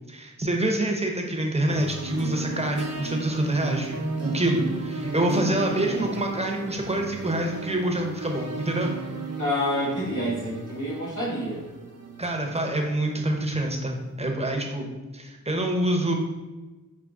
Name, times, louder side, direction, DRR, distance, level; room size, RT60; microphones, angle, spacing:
voice 1, 0.1-8.9 12.2-14.9 15.1-16.1, right 1 dB, 20° right, 2 dB, 0.8 m, -26 dB
sound 1, 1.7-13.2, right 4 dB, 50° right, 0.6 m, -34 dB
voice 2, 5.7-6.1 9.3-11.6, equal, 70° left, -6 dB, 1.3 m, -28 dB
4.7 x 3.0 x 3.8 m, 1.2 s
wide cardioid pair, 60°, 32 cm